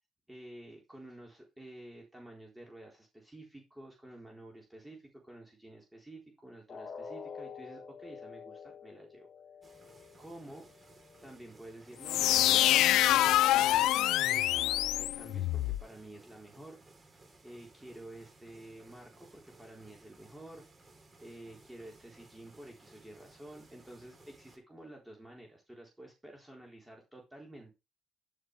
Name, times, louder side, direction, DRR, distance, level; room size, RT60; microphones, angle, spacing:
voice 1, 0.3-9.3 10.2-10.9 11.2-12.7 13.0-16.8 17.4-20.6 21.2-27.7, right 1 dB, 10° right, -1 dB, 3.9 m, -51 dB
sound 1, 6.7-12.7 13.1-13.2 13.7-13.8, left 6 dB, 45° left, 2.6 m, -49 dB
sound 2, 9.6-24.6, right 2 dB, 25° right, 3.6 m, -59 dB
sound 3, 12.0-15.8, left 14 dB, 80° left, 0.4 m, -26 dB
11.0 x 9.0 x 3.3 m, 0.26 s
cardioid pair, 95°, 0 cm